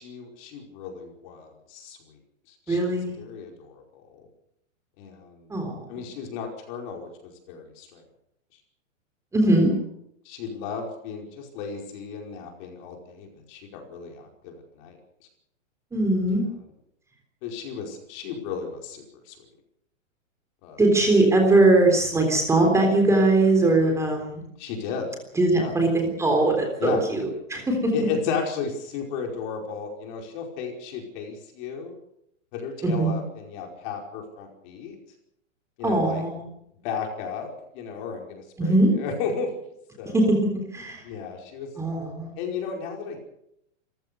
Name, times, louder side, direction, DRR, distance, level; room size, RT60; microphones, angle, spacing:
voice 1, 0.0-2.2 2.5-4.3 5.0-5.5 5.9-8.0 9.4-9.6 10.2-15.0 16.3-16.5 17.4-19.4 20.6-20.8 24.6-25.1 25.5-25.7 26.8-27.0 27.9-31.9 32.5-35.0 35.8-36.2 36.8-39.5 40.0-40.3 41.0-41.7 42.4-43.2, left 5 dB, 35° left, 2 dB, 5.1 m, -34 dB
voice 2, 2.7-3.2 5.5-5.8 9.3-9.7 15.9-16.4 20.8-24.4 25.4-27.9 32.8-33.1 35.8-36.5 38.6-38.9 40.1-40.2 40.7-41.0 41.8-42.3, right 2 dB, 5° right, 2 dB, 3.6 m, -21 dB
27.0 x 15.5 x 6.8 m, 0.77 s
hypercardioid pair, 160°, 38 cm